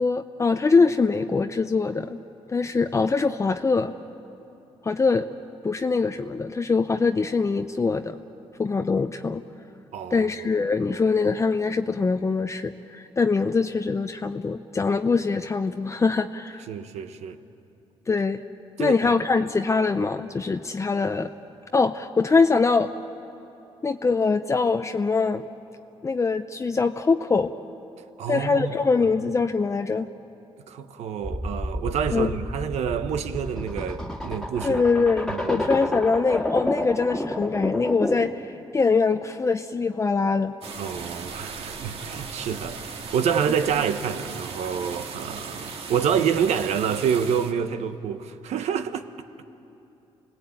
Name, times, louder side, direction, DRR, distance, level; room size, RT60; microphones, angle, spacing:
voice 1, 0.0-2.2 2.5-3.9 4.8-5.3 5.6-8.2 8.6-9.4 10.1-16.6 18.1-18.4 18.8-21.3 21.7-22.9 23.8-25.5 26.0-27.5 28.3-30.1 32.1-32.3 34.6-40.5, left 4 dB, 25° left, 0.6 m, -23 dB
voice 2, 9.9-10.3 16.7-17.4 18.8-19.1 28.2-28.7 30.7-34.8 35.3-35.7 40.8-42.8 43.1-49.1, right 7 dB, 80° right, 1.1 m, -27 dB
sound 1, 31.2-38.4, left 1 dB, 5° left, 1.9 m, -30 dB
sound 2, 40.6-47.5, right 4 dB, 60° right, 1.9 m, -37 dB
29.0 x 19.0 x 8.7 m
cardioid pair, 95°, 11 cm